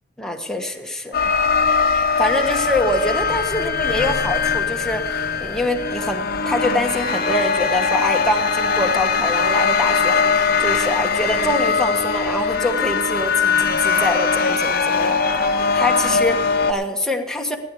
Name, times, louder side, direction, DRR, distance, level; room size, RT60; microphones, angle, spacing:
voice 1, 0.2-1.3 1.9-15.2 15.7-17.6, left 1 dB, 5° left, 2 dB, 1.4 m, -24 dB
sound 1, 1.1-16.7, left 5 dB, 50° left, 1.0 m, -20 dB
16.5 x 10.0 x 5.0 m, 1.2 s
head